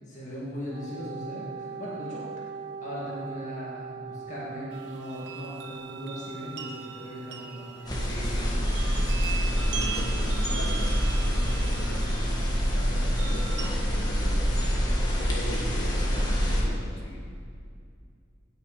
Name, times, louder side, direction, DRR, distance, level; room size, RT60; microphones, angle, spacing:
voice 1, 0.1-2.2 2.8-7.8, equal, 35° left, -6 dB, 2.1 m, -38 dB
Wind instrument woodwind instrument, 0.7-8.4, right 5 dB, 40° right, 0.7 m, -41 dB
sound 1, 4.7-13.7, right 7 dB, 65° right, 1.1 m, -40 dB
sound 2, 7.9-16.6, equal, 20° left, 1.6 m, -26 dB
voice 2, 8.0-17.2, left 1 dB, 75° left, -2 dB, 2.3 m, -40 dB
17.5 x 6.5 x 5.0 m, 2.2 s
head